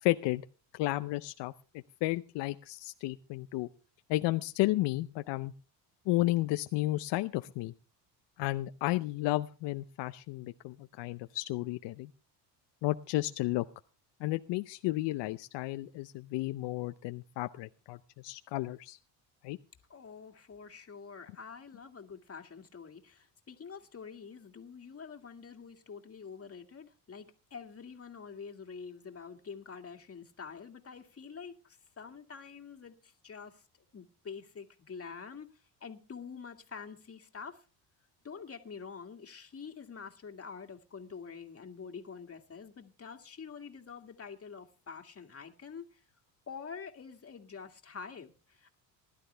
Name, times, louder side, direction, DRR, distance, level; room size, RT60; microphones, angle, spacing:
voice 1, 0.0-0.4 0.7-3.7 4.1-5.5 6.1-7.7 8.4-12.1 12.8-13.7 14.2-18.0 18.2-19.0 19.4-19.6, left 18 dB, 75° left, 0.7 m, -32 dB
voice 2, 19.9-33.6 33.9-35.5 35.8-37.6 38.2-46.0 46.5-48.7, left 6 dB, 30° left, 2.1 m, -47 dB
19.5 x 11.5 x 3.4 m
cardioid pair, 95°, 43 cm